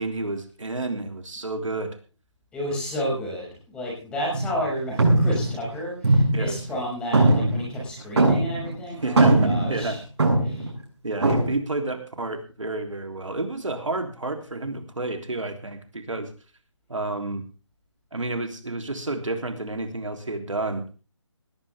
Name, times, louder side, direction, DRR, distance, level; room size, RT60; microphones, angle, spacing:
voice 1, 0.0-2.0 6.3-6.6 9.0-10.0 11.0-16.3 16.9-17.4 18.1-20.8, right 2 dB, 90° right, 5 dB, 3.4 m, -30 dB
voice 2, 2.5-10.0 10.4-10.7, equal, 5° left, -3 dB, 6.2 m, -31 dB
sound 1, 4.3-4.6 5.0-6.8 7.1-8.8 9.0-10.7 11.2-11.5, right 2 dB, 60° right, 7.5 m, -20 dB
19.5 x 14.5 x 3.6 m, 0.36 s
figure-of-eight pair, 165°, 16 cm